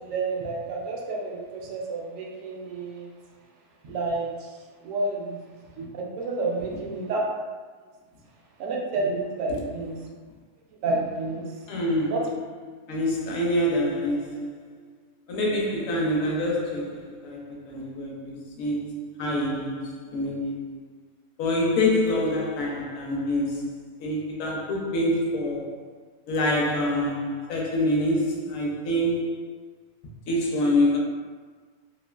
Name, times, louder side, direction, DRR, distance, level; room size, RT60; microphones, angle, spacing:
voice 1, 0.0-3.1 3.8-4.6 4.8-7.2 8.6-10.0 10.8-11.6 12.1-12.2, right 3 dB, 70° right, 0.8 m, -30 dB
voice 2, 11.7-12.4 12.9-14.7 15.3-20.8 21.4-25.9 26.3-29.5 30.3-31.0, left 1 dB, 65° left, 0.9 m, -26 dB
3.0 x 2.5 x 2.3 m
omnidirectional pair, 1.7 m